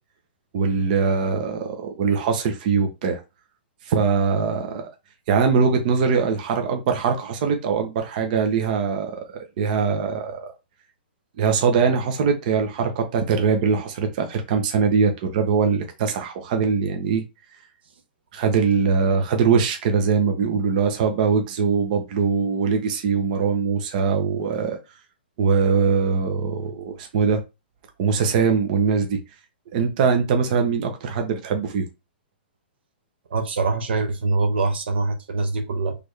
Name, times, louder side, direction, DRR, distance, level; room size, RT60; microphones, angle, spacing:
voice 1, 0.5-3.2 3.9-4.9 5.3-10.5 11.4-17.2 18.3-24.8 25.4-27.4 28.0-29.2 29.7-31.9, right 5 dB, 50° right, 1.0 m, -22 dB
voice 2, 33.3-36.0, right 3 dB, 75° right, 1.1 m, -24 dB
4.2 x 3.4 x 3.3 m
hypercardioid pair, 145°, 6 cm